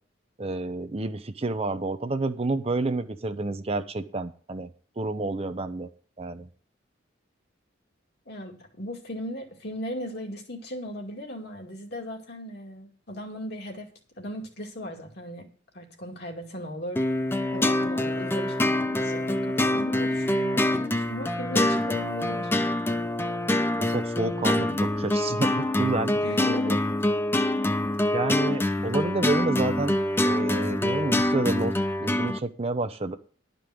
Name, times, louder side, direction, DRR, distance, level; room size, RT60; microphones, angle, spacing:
voice 1, 0.4-4.7 5.0-5.9 6.2-6.5 23.8-26.7 28.1-30.0 30.2-31.7 32.0-33.2, right 2 dB, 30° right, 9 dB, 0.6 m, -29 dB
voice 2, 8.3-13.9 14.2-15.5 15.7-17.1 17.5-22.5 26.2-26.8, equal, 55° left, 1 dB, 2.2 m, -37 dB
sound 1, 17.0-32.4, left 1 dB, 10° left, 0.5 m, -25 dB
11.5 x 5.3 x 7.6 m, 0.43 s
head